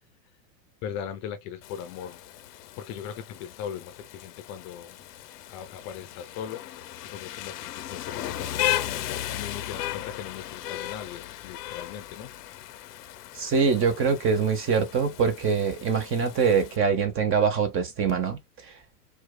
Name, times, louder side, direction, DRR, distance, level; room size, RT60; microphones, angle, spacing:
voice 1, 0.8-2.2 2.8-5.0 5.5-12.3, left 8 dB, 35° left, 0.6 m, -39 dB
Rain, 1.6-16.8, left 13 dB, 70° left, 0.7 m, -36 dB
voice 2, 13.4-18.4, right 6 dB, 25° right, 0.8 m, -24 dB
4.5 x 2.4 x 2.2 m
hypercardioid pair, 105°, 49 cm